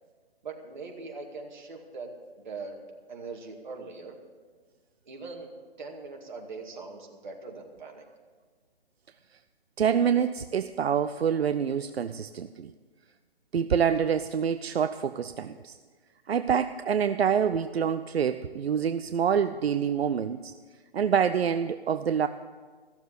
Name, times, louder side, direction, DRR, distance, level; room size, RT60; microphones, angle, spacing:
voice 1, 0.4-2.1 2.4-2.7 3.1-4.2 5.1-8.0, right 4 dB, 50° right, 1 dB, 2.2 m, -41 dB
voice 2, 9.8-12.7 13.5-15.8 16.3-20.5 20.9-22.3, right 7 dB, 80° right, 10 dB, 0.6 m, -26 dB
15.0 x 7.2 x 8.1 m, 1.5 s
hypercardioid pair, 170°, 31 cm